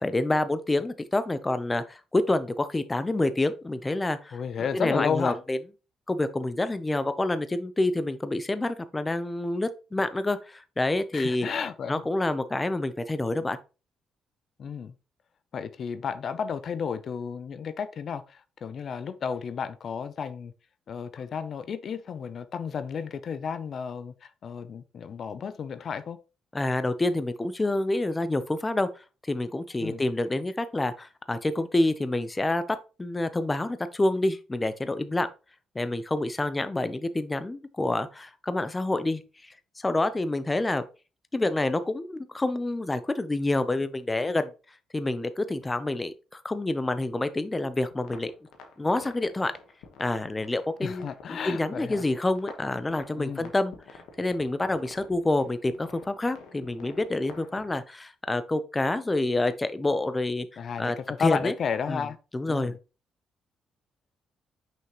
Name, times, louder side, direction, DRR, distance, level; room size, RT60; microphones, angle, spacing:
voice 1, 0.0-4.4 4.7-5.6 6.1-11.5 11.9-13.6 26.5-35.3 35.7-40.8 41.3-44.5 44.9-48.3 48.8-49.5 50.0-51.0 51.4-60.5 60.8-61.5 61.9-62.0 62.3-62.7, left 2 dB, 20° left, 0.7 m, -28 dB
voice 2, 4.3-5.4 11.1-12.1 14.6-14.9 15.5-20.5 20.9-26.2 29.8-30.0 50.8-52.0 53.2-53.5 60.6-62.2 62.5-62.8, left 6 dB, 55° left, 0.6 m, -32 dB
sound 1, 47.9-57.8, left 4 dB, 90° left, 1.3 m, -49 dB
6.0 x 5.6 x 3.0 m
cardioid pair, 90°, 0 cm